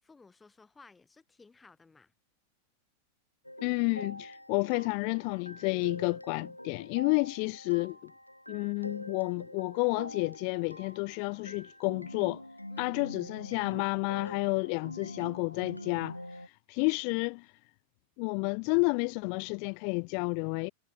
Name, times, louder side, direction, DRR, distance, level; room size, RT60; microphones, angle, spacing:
voice 1, 0.0-2.1 12.7-13.0, left 4 dB, 10° left, 7.1 m, -57 dB
sound 1, 3.4-16.5, left 1 dB, 90° left, 2.0 m, -45 dB
voice 2, 3.6-8.1 8.5-12.4 12.8-17.5 18.2-20.7, left 40 dB or more, 45° left, 0.8 m, -31 dB
figure-of-eight pair, 90°, 0 cm